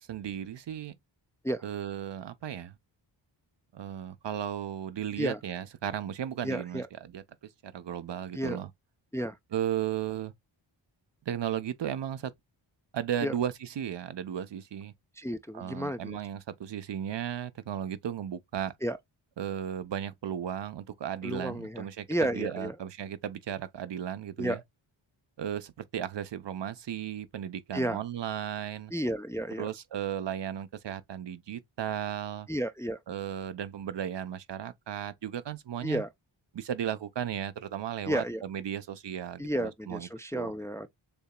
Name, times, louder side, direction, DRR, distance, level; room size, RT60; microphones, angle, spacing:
voice 1, 0.1-0.9 1.6-2.7 3.7-7.2 7.6-8.7 9.5-10.3 11.3-12.3 12.9-14.9 15.5-18.7 19.4-24.6 25.4-28.9 29.6-32.5 33.1-36.0 36.5-40.5, right 10 dB, 60° right, 0.7 m, -35 dB
voice 2, 6.4-6.9 8.3-8.6 9.1-9.4 13.2-13.3 15.2-16.2 18.8-19.0 21.2-22.8 24.4-24.6 27.7-28.0 28.9-29.7 32.5-33.0 35.8-36.1 38.1-38.4 39.4-40.9, equal, 5° left, 0.5 m, -32 dB
6.9 x 2.8 x 2.2 m
cardioid pair, 45°, 49 cm